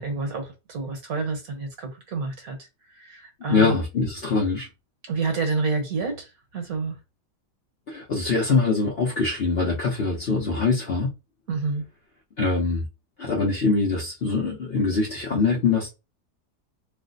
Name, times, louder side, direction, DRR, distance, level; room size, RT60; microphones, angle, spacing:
voice 1, 0.0-2.6 2.9-3.8 5.0-6.9 11.5-11.8, right 4 dB, 60° right, 1.5 m, -28 dB
voice 2, 3.5-4.7 7.9-11.1 12.4-12.8 13.2-15.9, left 4 dB, 50° left, 0.8 m, -23 dB
3.2 x 2.0 x 3.8 m
omnidirectional pair, 1.8 m